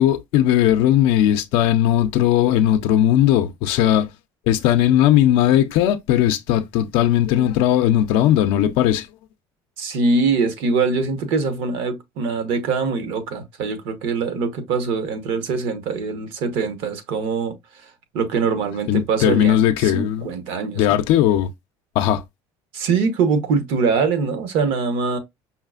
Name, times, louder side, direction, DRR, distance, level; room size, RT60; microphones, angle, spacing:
voice 1, 0.0-4.1 4.5-9.1 18.9-20.3 20.8-21.5 22.0-22.2, left 11 dB, 70° left, 0.4 m, -18 dB
voice 2, 9.8-17.6 17.8-21.0 22.7-25.2, right 4 dB, 70° right, 1.0 m, -23 dB
5.6 x 2.4 x 2.3 m
cardioid pair, 140°, 9 cm